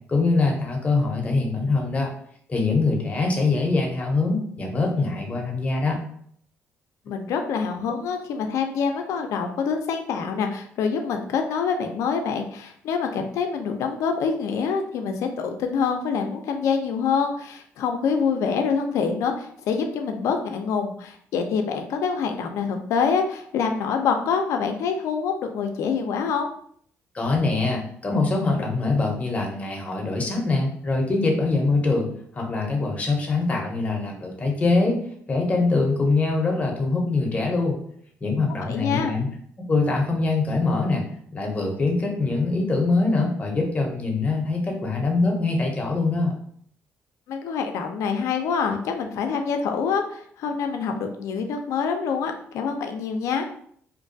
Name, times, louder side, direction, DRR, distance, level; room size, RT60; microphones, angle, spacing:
voice 1, 0.1-2.1 2.5-6.0 27.1-32.1 32.3-35.0 35.3-37.8 38.2-39.3 39.7-41.0 41.3-46.3, left 3 dB, 25° left, 1 dB, 0.7 m, -23 dB
voice 2, 7.1-26.5 38.7-39.1 47.3-53.5, left 6 dB, 75° left, 5 dB, 0.4 m, -26 dB
2.5 x 2.2 x 2.6 m, 0.63 s
cardioid pair, 110°, 5 cm